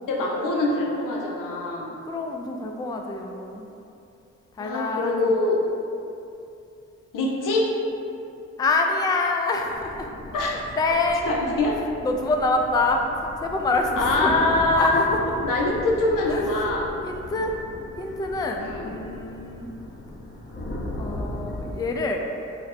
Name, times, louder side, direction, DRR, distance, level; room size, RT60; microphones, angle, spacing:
voice 1, 0.1-1.9 4.6-5.6 7.1-7.7 10.3-10.5 11.3-11.8 14.0-15.0 15.4-16.9 18.6-18.9, left 2 dB, 80° left, -2 dB, 0.6 m, -23 dB
voice 2, 2.0-3.7 4.6-5.1 8.6-10.1 10.3-11.3 12.0-14.4 14.8-15.2 16.3-16.4 17.0-17.5 18.0-19.7 21.0-22.2, left 3 dB, 15° left, 2 dB, 0.3 m, -26 dB
sound 1, 9.7-21.7, left 1 dB, 30° left, 0.8 m, -37 dB
3.9 x 2.0 x 4.1 m, 2.7 s
cardioid pair, 55°, 32 cm